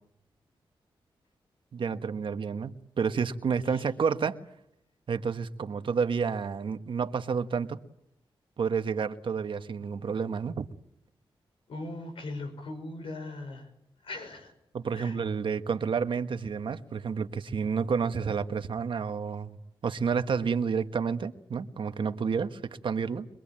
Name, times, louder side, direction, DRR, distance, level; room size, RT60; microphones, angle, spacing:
voice 1, 1.7-4.4 5.1-7.8 8.6-10.7 14.7-19.6 19.8-23.3, right 6 dB, 65° right, 9 dB, 1.4 m, -30 dB
voice 2, 11.7-13.7 14.0-14.5 15.0-15.2, left 2 dB, 75° left, 7 dB, 6.5 m, -39 dB
24.0 x 22.0 x 8.8 m, 0.77 s
cardioid pair, 85°, 9 cm